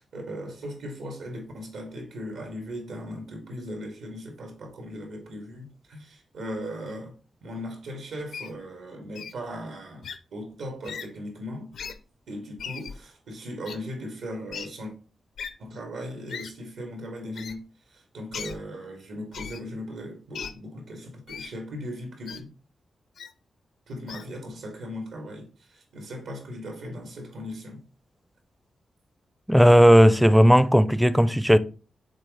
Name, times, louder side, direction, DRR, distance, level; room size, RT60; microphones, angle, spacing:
voice 1, 0.0-7.1 7.4-11.7 12.3-14.9 15.6-17.6 17.9-22.5 23.9-27.8, equal, 85° right, 2.3 m, -38 dB
Wild animals, 8.3-8.5 9.2-9.3 10.0-10.2 10.8-11.1 11.7-11.9 12.6-13.0 13.7-13.8 14.5-14.7 15.4-15.5 16.3-16.5 17.3-17.5 18.3-18.6 19.3-19.6 20.3-20.5 21.3-21.5 22.3-22.4 23.2-23.3 24.1-24.3, left 7 dB, 85° left, 0.6 m, -37 dB
voice 2, 29.5-31.6, equal, ahead, 0.4 m, -16 dB
6.5 x 4.0 x 3.9 m
cardioid pair, 105°, 0 cm